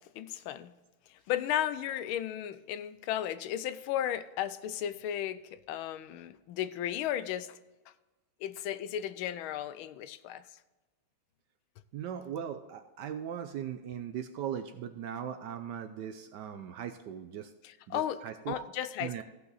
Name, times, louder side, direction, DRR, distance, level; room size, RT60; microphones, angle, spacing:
voice 1, 0.2-0.7 1.3-7.5 8.4-10.4 17.6-18.2 18.5-19.2, left 11 dB, 80° left, 14 dB, 1.4 m, -34 dB
voice 2, 11.9-17.5 17.9-18.6 19.0-19.2, right 9 dB, 70° right, 9 dB, 1.0 m, -39 dB
15.0 x 5.8 x 4.0 m, 1.1 s
omnidirectional pair, 2.3 m